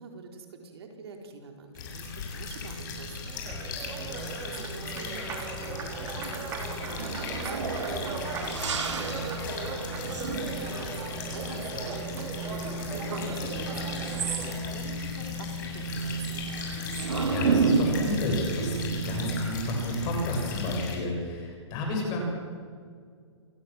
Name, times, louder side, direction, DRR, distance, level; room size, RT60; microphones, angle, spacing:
voice 1, 0.0-10.4 10.7-11.0 11.3-16.4, right 4 dB, 60° right, 3 dB, 4.7 m, -46 dB
sound 1, 1.7-21.0, left 2 dB, 40° left, 7.2 m, -35 dB
Applause, 3.0-14.9, right 4 dB, 15° right, 3.2 m, -38 dB
sound 2, 6.8-20.1, right 5 dB, 80° right, 3.3 m, -33 dB
voice 2, 17.3-22.2, left 1 dB, 25° left, 1 dB, 7.2 m, -31 dB
28.5 x 18.5 x 7.5 m, 2.1 s
hypercardioid pair, 160°, 15 cm